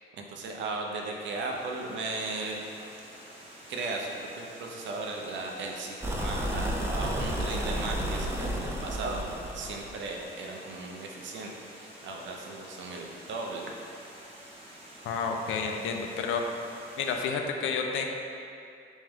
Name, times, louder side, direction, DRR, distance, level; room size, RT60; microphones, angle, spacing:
voice 1, 0.1-2.6 3.7-9.2 9.5-13.7, right 3 dB, 70° right, 0 dB, 0.6 m, -36 dB
Water, 0.7-17.2, right 1 dB, 30° right, 0.9 m, -50 dB
sound 1, 6.0-10.0, right 1 dB, 10° right, 0.4 m, -32 dB
voice 2, 15.0-16.4 17.0-18.1, left 5 dB, 80° left, 3 dB, 0.4 m, -30 dB
3.3 x 3.1 x 3.5 m, 2.5 s
cardioid pair, 90°, 20 cm